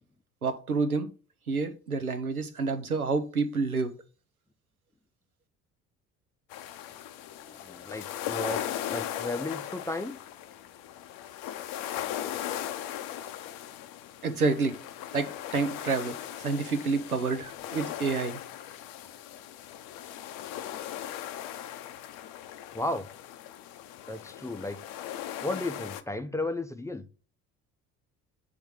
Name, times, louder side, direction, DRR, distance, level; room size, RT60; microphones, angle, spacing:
voice 1, 0.4-1.1 1.5-3.9 14.2-14.8 15.1-18.4, right 4 dB, 90° right, 0.6 m, -29 dB
sound 1, 6.5-26.0, left 11 dB, 55° left, 0.7 m, -38 dB
voice 2, 7.4-8.6 8.9-10.2 22.7-23.1 24.1-24.8 25.4-27.1, left 2 dB, 5° left, 0.6 m, -34 dB
7.7 x 3.6 x 4.8 m
figure-of-eight pair, 50°, 42 cm